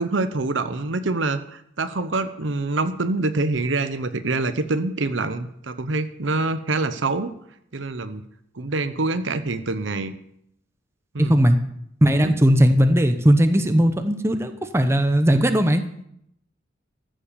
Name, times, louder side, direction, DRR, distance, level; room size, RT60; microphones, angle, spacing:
voice 1, 0.0-7.3 7.7-8.2 8.6-10.1 11.1-11.4 12.1-12.3, right 3 dB, 80° right, 11 dB, 0.9 m, -25 dB
voice 2, 11.2-11.6 12.0-15.8, equal, 15° right, 8 dB, 0.9 m, -18 dB
14.0 x 7.6 x 7.0 m, 0.73 s
head